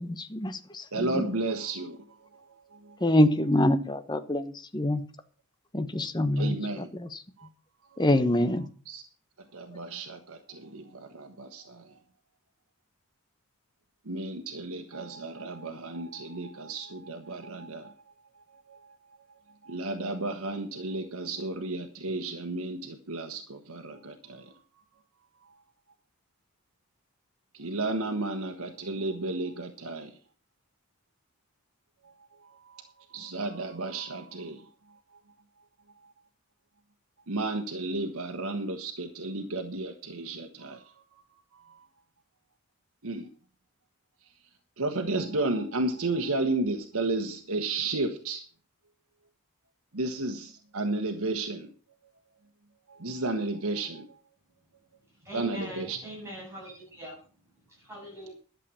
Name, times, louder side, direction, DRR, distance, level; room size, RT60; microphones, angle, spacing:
voice 1, 0.0-1.2 3.0-5.0 5.7-7.2 8.0-8.7, left 1 dB, 20° left, 1.1 m, -26 dB
voice 2, 0.9-2.0 2.3-2.4 2.7-3.0 6.4-6.9 7.4-7.5 7.9-8.0 8.9-9.0 9.5-11.9 14.1-17.9 18.7-18.9 19.6-24.6 27.5-30.1 32.6-32.8 33.1-34.6 37.3-41.2 41.7-41.8 43.0-43.3 44.8-48.4 49.9-51.7 52.9-54.1 55.3-56.0, right 2 dB, 90° right, 1.3 m, -33 dB
voice 3, 55.2-57.2 57.8-58.3, right 1 dB, 10° right, 7.6 m, -41 dB
12.0 x 7.7 x 7.0 m
head